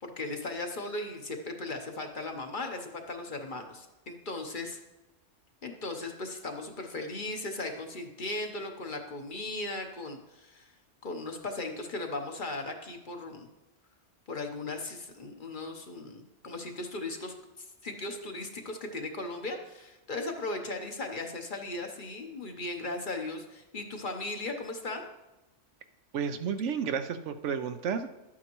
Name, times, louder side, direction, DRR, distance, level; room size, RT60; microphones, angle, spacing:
voice 1, 0.0-4.8 5.6-10.7 11.0-13.5 14.3-25.1, left 2 dB, 45° left, 4 dB, 1.0 m, -37 dB
voice 2, 26.1-28.1, right 6 dB, 75° right, 9 dB, 0.9 m, -31 dB
12.0 x 8.5 x 3.0 m, 0.98 s
omnidirectional pair, 1.2 m